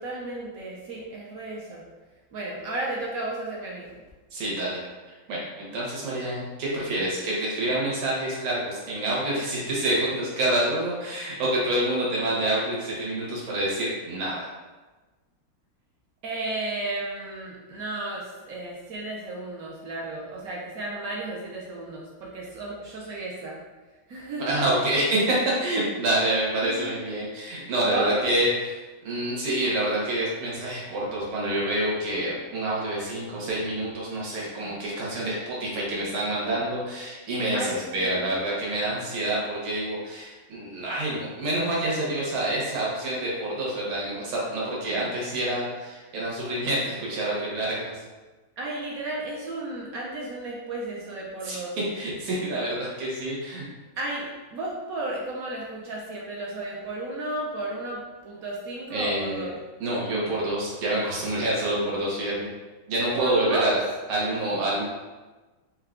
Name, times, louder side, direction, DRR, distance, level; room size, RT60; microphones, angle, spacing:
voice 1, 0.0-1.8 2.3-3.9 16.2-23.6 24.1-24.8 26.6-26.9 27.8-28.2 37.5-38.3 48.6-51.8 54.0-59.5 63.1-63.8, right 2 dB, 70° right, -3 dB, 0.8 m, -33 dB
voice 2, 4.3-4.8 5.3-5.4 5.7-14.5 24.5-28.8 29.0-48.0 51.4-51.6 51.9-53.6 58.9-59.5 59.8-62.5 62.9-63.8 64.1-64.8, right 1 dB, 85° right, -5 dB, 1.9 m, -27 dB
4.4 x 2.3 x 3.6 m, 1.2 s
omnidirectional pair, 2.2 m